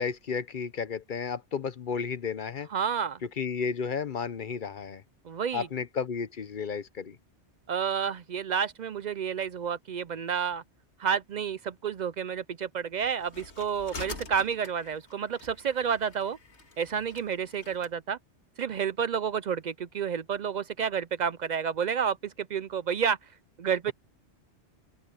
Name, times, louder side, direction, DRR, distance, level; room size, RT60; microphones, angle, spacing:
voice 1, 0.0-2.7 3.4-5.0 5.5-7.2, left 6 dB, 50° left, 0.8 m, -32 dB
voice 2, 2.7-3.2 5.2-5.7 7.7-10.6 11.0-16.4 16.8-18.2 18.6-23.2 23.6-23.9, right 7 dB, 60° right, 0.5 m, -30 dB
sound 1, 13.0-17.9, left 3 dB, 70° left, 2.4 m, -46 dB
open air
omnidirectional pair, 1.2 m